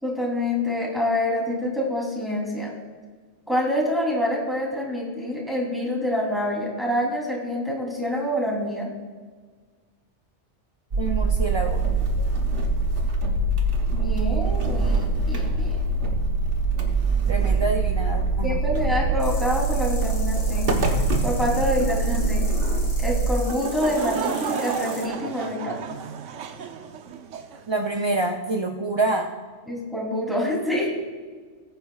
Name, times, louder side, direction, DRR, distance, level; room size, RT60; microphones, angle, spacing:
voice 1, 0.0-2.7 3.5-8.9 13.9-15.8 18.4-20.7 21.2-22.4 23.0-25.8 29.7-30.9, left 1 dB, ahead, -3 dB, 3.0 m, -26 dB
sound 1, 10.9-23.3, right 3 dB, 70° right, 1.5 m, -23 dB
voice 2, 11.0-11.8 17.3-18.6 27.7-29.3, right 2 dB, 40° right, 2 dB, 0.4 m, -26 dB
sound 2, 19.2-25.0, left 2 dB, 60° left, 2.8 m, -40 dB
Laughter / Crowd, 23.4-27.6, right 7 dB, 90° right, 1.1 m, -32 dB
20.5 x 9.2 x 2.4 m, 1.5 s
omnidirectional pair, 1.2 m